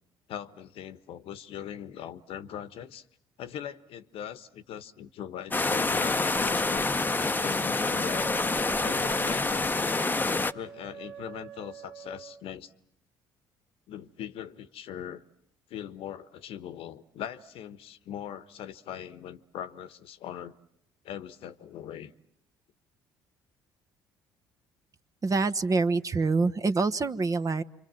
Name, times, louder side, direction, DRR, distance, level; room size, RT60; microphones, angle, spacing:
voice 1, 0.3-3.0 3.4-8.3 8.8-9.9 10.5-12.7 13.9-15.2 15.7-20.6 21.0-22.1, left 10 dB, 65° left, 13 dB, 1.3 m, -41 dB
sound 1, 5.5-10.5, left 3 dB, 20° left, 1.0 m, -27 dB
Wind instrument woodwind instrument, 7.9-12.4, right 8 dB, 65° right, 1.8 m, -45 dB
voice 2, 25.2-27.6, right 3 dB, 35° right, 11 dB, 1.2 m, -26 dB
28.0 x 25.0 x 7.6 m, 0.76 s
hypercardioid pair, 60°, 10 cm